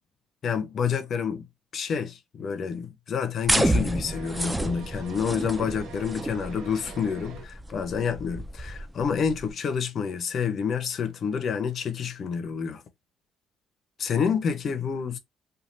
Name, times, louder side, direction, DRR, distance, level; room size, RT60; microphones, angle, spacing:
voice 1, 0.4-1.5 1.7-12.8 14.0-15.2, left 6 dB, 45° left, 0.6 m, -28 dB
sound 1, 3.5-9.5, right 1 dB, 5° right, 0.3 m, -30 dB
sound 2, 4.0-7.4, right 4 dB, 90° right, 0.9 m, -44 dB
3.1 x 2.2 x 2.6 m
cardioid pair, 150°, 0 cm